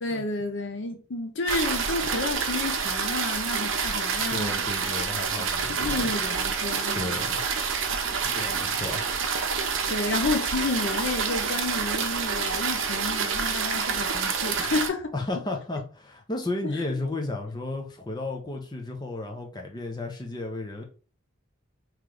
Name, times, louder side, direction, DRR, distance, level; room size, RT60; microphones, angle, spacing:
voice 1, 0.0-4.5 5.4-7.2 9.9-15.1 16.6-17.0, left 3 dB, 60° left, 0.6 m, -31 dB
sound 1, 1.5-14.9, right 6 dB, 70° right, 0.7 m, -28 dB
voice 2, 4.3-6.1 6.9-7.4 8.3-9.0 15.1-20.8, left 2 dB, 20° left, 0.6 m, -33 dB
3.1 x 3.1 x 3.7 m
head